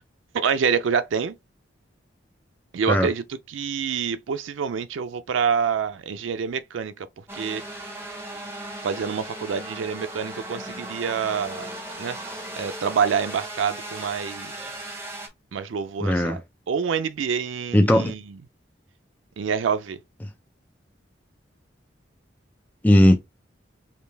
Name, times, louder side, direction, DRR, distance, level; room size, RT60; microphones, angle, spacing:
voice 1, 0.3-1.3 2.7-7.1 7.3-7.6 8.8-11.7 12.0-12.2 12.6-14.7 15.5-16.4 16.7-18.2 19.4-20.0, right 6 dB, 85° right, 0.4 m, -26 dB
sound 1, 7.3-15.3, right 1 dB, 15° right, 0.8 m, -37 dB
voice 2, 16.0-16.4 17.7-18.1 22.8-23.2, left 1 dB, 10° left, 0.4 m, -17 dB
5.1 x 2.3 x 3.3 m
head